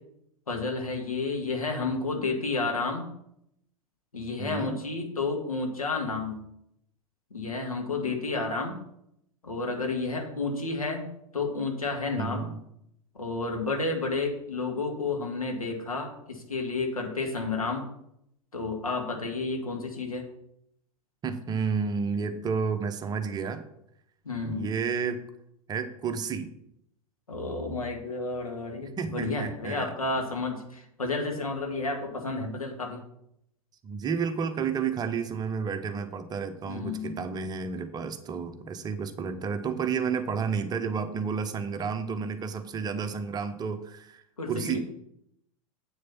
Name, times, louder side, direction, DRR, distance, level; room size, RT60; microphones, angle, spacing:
voice 1, 0.5-3.1 4.1-6.4 7.3-8.8 9.4-12.5 13.1-17.9 18.5-20.3 24.2-24.7 27.3-33.0 36.7-37.3 44.4-44.8, left 3 dB, 80° left, 2 dB, 2.0 m, -31 dB
voice 2, 4.4-4.8 12.1-12.6 21.2-23.6 24.4-25.3 25.7-26.5 29.0-29.9 32.4-32.6 33.8-44.8, right 6 dB, 20° right, 9 dB, 0.8 m, -31 dB
7.9 x 6.4 x 5.8 m, 0.76 s
figure-of-eight pair, 90°, 18 cm